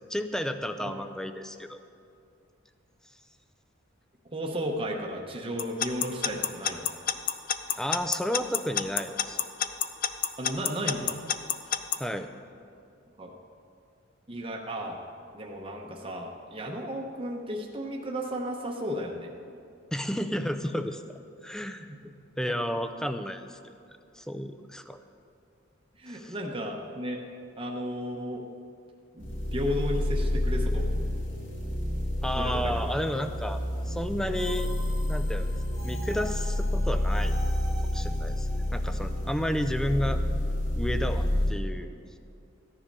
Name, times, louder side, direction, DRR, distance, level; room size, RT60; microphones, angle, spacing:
voice 1, 0.1-1.8 7.8-9.4 12.0-12.3 19.9-21.0 21.4-21.9 22.4-23.6 24.1-25.0 26.1-26.3 32.2-33.6 33.9-34.7 35.1-35.5 35.8-37.3 37.9-40.2 40.7-41.9, equal, 5° left, 9 dB, 0.5 m, -32 dB
voice 2, 4.3-6.9 10.4-11.2 13.2-13.3 14.3-15.0 15.3-19.3 21.9-22.0 22.5-22.6 26.0-27.2 27.6-28.4 29.1-30.9 32.3-32.9, equal, 25° right, 0 dB, 0.9 m, -34 dB
Alarm / Clock, 5.6-12.0, left 9 dB, 45° left, 0.6 m, -27 dB
sound 1, 29.2-41.5, left 1 dB, 70° left, 2.2 m, -29 dB
14.0 x 10.0 x 5.4 m, 2.4 s
head